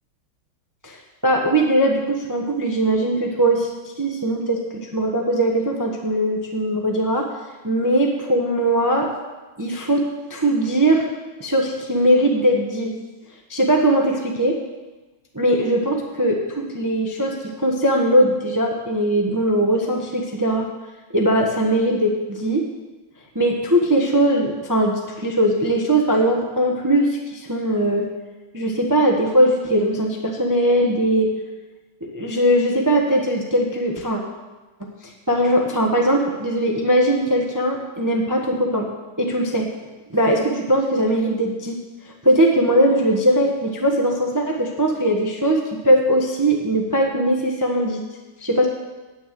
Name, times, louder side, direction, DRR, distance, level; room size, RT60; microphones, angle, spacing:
voice 1, 0.8-3.7 4.0-7.3 7.6-9.1 9.6-10.0 10.3-11.1 11.4-12.9 13.5-14.6 15.3-20.7 21.1-22.7 23.3-28.1 28.5-31.3 32.0-34.2 34.8-38.9 39.2-39.7 40.1-41.8 42.0-48.0 48.4-48.7, right 1 dB, 15° right, 1 dB, 0.8 m, -20 dB
9.5 x 9.2 x 7.6 m, 1.2 s
omnidirectional pair, 2.4 m